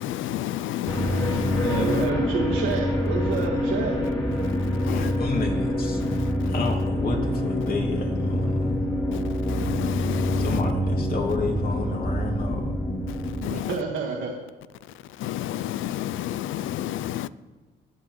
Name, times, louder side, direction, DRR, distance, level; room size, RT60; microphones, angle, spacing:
voice 1, 0.0-2.1 4.9-5.2 6.0-6.3 9.1-10.6 13.1-13.7 15.2-17.3, left 12 dB, 80° left, 0.5 m, -30 dB
sound 1, 0.9-13.4, equal, 20° left, 2.5 m, -26 dB
voice 2, 1.6-4.0 13.5-14.3, right 5 dB, 90° right, 1.7 m, -29 dB
voice 3, 4.8-6.0 6.5-8.9 10.4-12.8, left 3 dB, 50° left, 2.6 m, -30 dB
23.0 x 7.7 x 3.2 m
cardioid pair, 90°, 20 cm